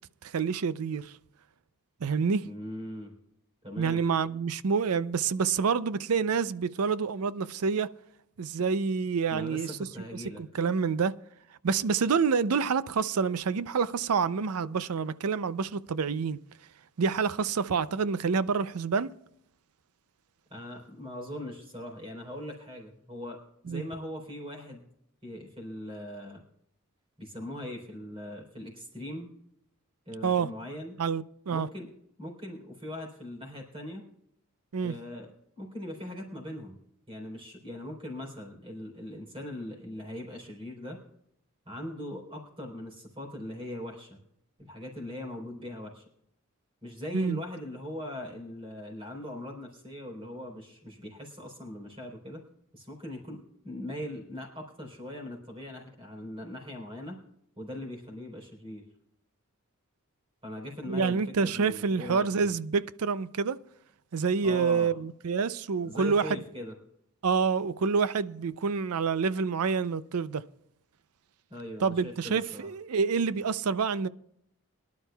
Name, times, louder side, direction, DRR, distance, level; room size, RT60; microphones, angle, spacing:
voice 1, 0.2-1.1 2.0-2.5 3.8-7.9 8.4-9.7 10.4-11.2 11.6-16.4 17.0-19.1 23.7-23.8 30.2-30.5 31.0-31.7 34.7-34.9 47.1-47.4 60.9-63.6 64.1-66.4 67.2-70.4 71.8-74.1, right 5 dB, 80° right, 0.5 m, -27 dB
voice 2, 2.4-3.1 3.6-4.0 9.3-10.4 20.5-24.9 25.2-26.4 27.2-29.3 30.1-31.0 31.5-31.9 32.2-34.0 34.8-36.8 37.1-41.0 41.7-44.2 44.6-46.0 46.8-52.4 52.7-57.2 57.6-58.9 60.4-62.5 64.4-64.9 65.8-66.7 71.5-72.7, left 1 dB, 25° right, 3.9 m, -40 dB
23.0 x 11.5 x 2.3 m
head